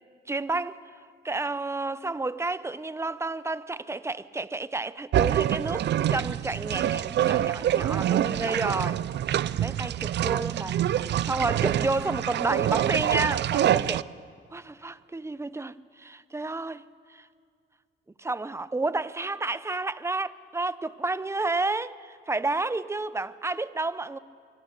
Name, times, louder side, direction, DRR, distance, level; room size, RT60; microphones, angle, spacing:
voice 1, 0.3-0.9 1.2-9.0 9.6-10.8 11.2-14.0 14.5-16.8 17.1-17.3 18.2-24.2, right 3 dB, 15° right, 0.8 m, -30 dB
sound 1, 5.1-14.0, right 11 dB, 60° right, 0.5 m, -26 dB
25.0 x 24.0 x 6.7 m
cardioid pair, 90°, 20 cm